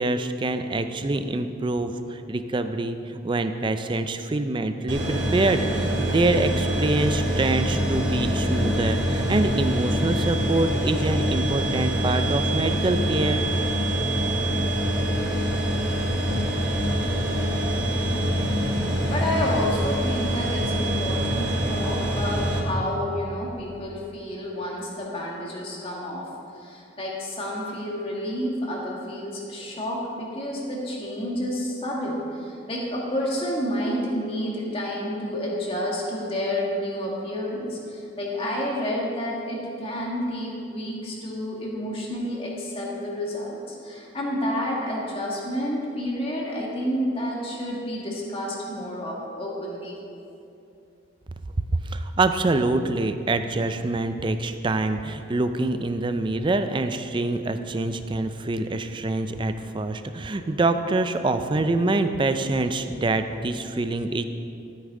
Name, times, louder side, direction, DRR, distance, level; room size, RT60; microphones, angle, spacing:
voice 1, 0.0-13.4 51.8-64.2, right 2 dB, 25° right, 9 dB, 0.4 m, -25 dB
sound 1, 4.9-22.6, equal, 75° right, 2.2 m, -25 dB
voice 2, 19.1-26.2 26.6-50.0, equal, 30° left, -3 dB, 1.8 m, -30 dB
13.0 x 8.7 x 3.8 m, 2.7 s
head